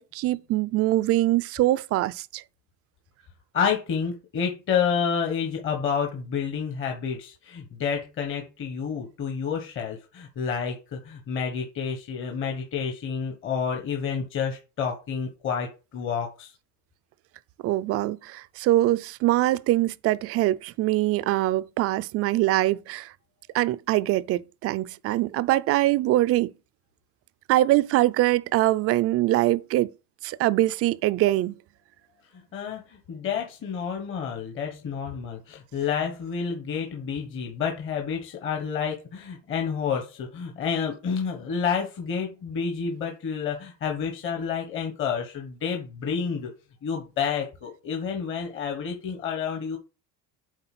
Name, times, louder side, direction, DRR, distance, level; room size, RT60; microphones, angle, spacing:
voice 1, 0.0-2.4 17.6-23.1 23.5-26.5 27.5-29.9 30.2-31.5, right 16 dB, 45° right, 0.4 m, -23 dB
voice 2, 3.5-16.5 32.3-46.5 46.8-49.8, left 6 dB, 40° left, 1.2 m, -29 dB
7.9 x 4.3 x 5.9 m
cardioid pair, 165°, 32 cm